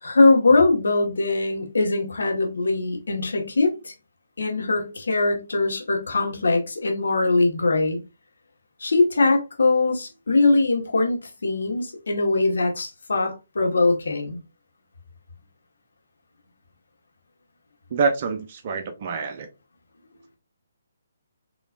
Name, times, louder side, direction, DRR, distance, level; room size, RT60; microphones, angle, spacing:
voice 1, 0.0-3.9 4.4-8.0 8.8-14.4, left 3 dB, 75° left, 1.5 m, -21 dB
voice 2, 17.9-19.5, right 4 dB, 45° right, 0.7 m, -26 dB
5.1 x 3.1 x 2.5 m
hypercardioid pair, 145°, 0 cm